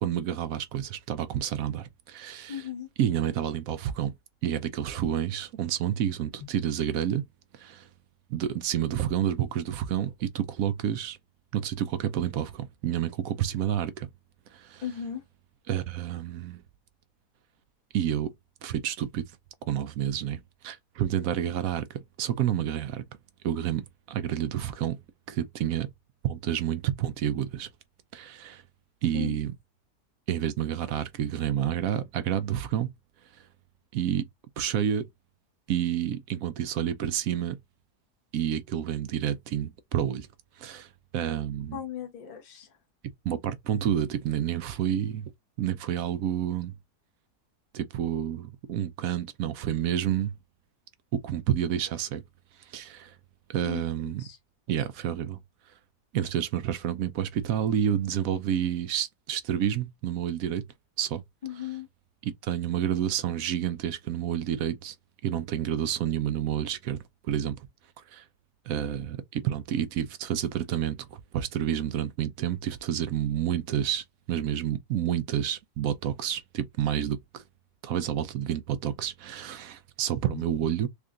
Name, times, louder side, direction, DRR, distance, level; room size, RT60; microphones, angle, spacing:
voice 1, 0.0-2.6 3.0-4.1 4.4-7.2 7.5-7.9 8.3-11.2 11.5-14.1 14.5-14.8 15.7-16.6 17.9-18.3 18.6-19.3 19.7-23.0 23.4-25.0 25.3-25.9 26.2-27.7 28.1-28.6 29.0-29.5 30.3-32.9 33.9-34.3 34.6-35.1 35.7-37.6 38.3-40.3 40.6-41.8 43.2-45.3 45.6-46.7 47.7-50.3 51.1-52.2 52.7-53.1 53.5-54.2 54.7-55.4 56.1-60.7 61.0-61.2 62.2-64.9 65.2-67.6 68.1-68.2 68.7-77.4 77.8-80.9, right 10 dB, 70° right, 0.9 m, -29 dB
voice 2, 2.5-2.9 14.8-15.2 29.1-29.4 41.7-42.7 53.6-54.4 61.4-61.9 80.3-80.4, left 9 dB, 30° left, 1.0 m, -37 dB
3.6 x 2.5 x 3.7 m
omnidirectional pair, 1.7 m